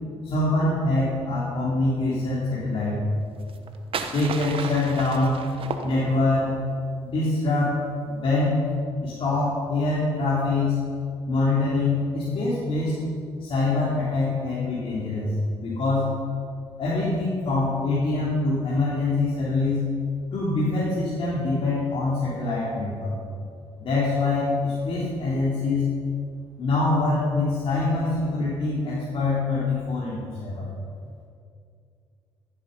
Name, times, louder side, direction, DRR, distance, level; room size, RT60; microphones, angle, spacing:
voice 1, 0.2-3.0 4.0-5.4 5.8-6.6 7.0-7.8 8.0-8.6 9.0-10.8 11.3-13.0 13.4-15.3 15.6-16.1 16.8-19.9 20.3-23.1 23.8-25.9 26.6-30.7, left 2 dB, 55° left, -8 dB, 3.6 m, -24 dB
sound 1, 3.4-6.4, right 5 dB, 60° right, 1.3 m, -34 dB
15.0 x 9.3 x 5.5 m, 2.4 s
supercardioid pair, 70°, 11 cm